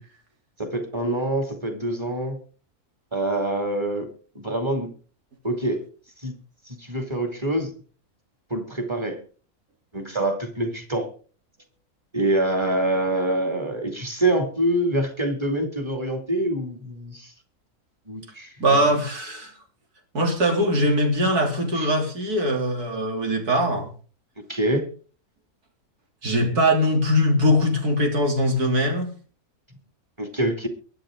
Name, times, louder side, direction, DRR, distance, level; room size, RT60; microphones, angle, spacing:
voice 1, 0.6-2.4 3.1-4.1 4.3-4.9 5.4-5.9 6.2-6.3 6.7-7.7 8.5-9.2 9.9-11.1 12.1-17.3 18.1-18.9 21.8-21.9 24.5-24.8 30.2-30.7, right 1 dB, 15° right, 4 dB, 2.7 m, -25 dB
voice 2, 18.6-19.5 20.1-23.9 26.2-29.1, equal, 85° right, 2 dB, 3.8 m, -21 dB
23.0 x 9.2 x 3.8 m, 0.39 s
omnidirectional pair, 1.6 m